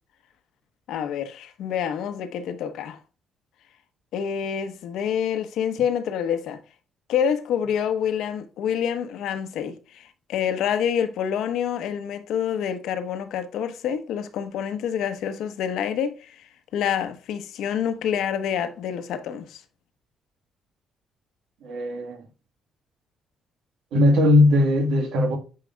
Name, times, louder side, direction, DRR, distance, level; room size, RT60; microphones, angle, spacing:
voice 1, 0.9-3.0 4.1-6.6 7.1-16.4 16.7-19.6, left 8 dB, 85° left, 0.9 m, -27 dB
voice 2, 21.6-22.2 23.9-25.4, left 1 dB, 85° right, 1.6 m, -19 dB
9.5 x 4.9 x 2.2 m
cardioid pair, 135°, 0 cm